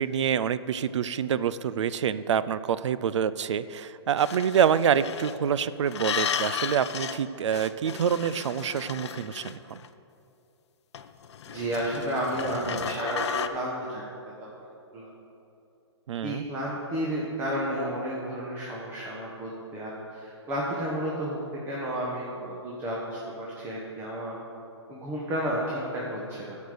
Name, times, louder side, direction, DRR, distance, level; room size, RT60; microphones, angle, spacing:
voice 1, 0.0-9.8 16.1-16.4, right 8 dB, 80° right, 15 dB, 0.4 m, -26 dB
sound 1, 4.2-5.4 5.9-7.2 7.5-9.9 10.9-13.5, left 8 dB, 70° left, 0.6 m, -34 dB
voice 2, 11.5-14.0 14.4-14.5 14.9-15.1 16.2-21.4 21.7-24.4 24.9-26.6, right 1 dB, 15° right, -5 dB, 1.2 m, -32 dB
11.5 x 5.3 x 6.7 m, 2.8 s
hypercardioid pair, 155°, 15 cm